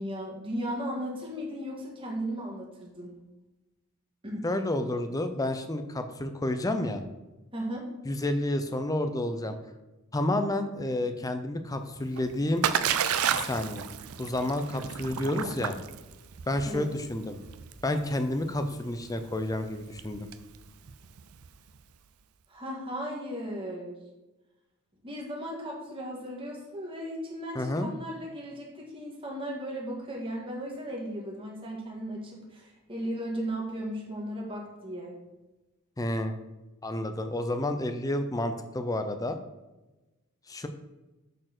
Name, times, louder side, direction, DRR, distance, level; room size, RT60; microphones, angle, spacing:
voice 1, 0.0-3.1 4.2-4.5 7.5-7.9 16.6-16.9 22.5-24.0 25.0-35.1, equal, 25° right, -3 dB, 1.8 m, -36 dB
voice 2, 4.4-7.0 8.0-9.6 10.1-12.7 13.3-13.9 14.2-15.8 16.5-17.4 17.8-20.3 27.5-27.9 36.0-36.4 36.8-39.4 40.5-40.7, left 1 dB, 15° left, 8 dB, 0.5 m, -30 dB
Splash splatter, 11.9-21.8, right 8 dB, 85° right, 0.5 m, -33 dB
6.4 x 4.4 x 6.0 m, 1.1 s
head